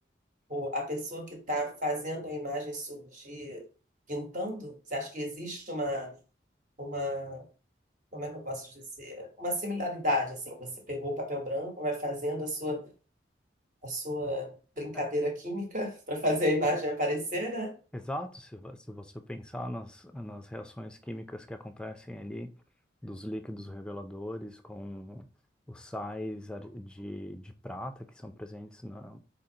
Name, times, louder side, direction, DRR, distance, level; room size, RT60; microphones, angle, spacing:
voice 1, 0.5-3.6 4.1-6.1 6.8-7.4 8.1-12.8 13.8-17.7, equal, 45° right, 1.2 m, -32 dB
voice 2, 17.9-22.5 23.0-25.3 25.7-29.2, left 1 dB, 5° left, 0.4 m, -40 dB
4.2 x 3.9 x 2.8 m
head